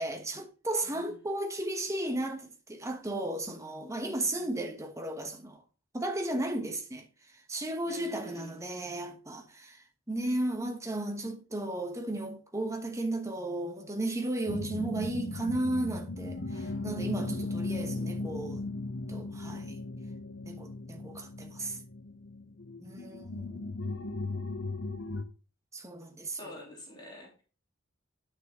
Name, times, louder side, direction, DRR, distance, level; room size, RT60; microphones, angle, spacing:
voice 1, 0.0-5.6 5.9-7.1 7.3-18.6 19.1-19.8 20.5-21.8 22.8-23.6 25.7-26.6, right 1 dB, 15° right, 1.1 m, -34 dB
voice 2, 0.8-1.1 4.1-4.4 7.8-8.6 16.5-16.8 26.4-27.4, left 1 dB, 20° left, 3.3 m, -48 dB
sound 1, 14.5-25.2, left 2 dB, 65° left, 0.9 m, -37 dB
9.9 x 6.3 x 3.7 m
head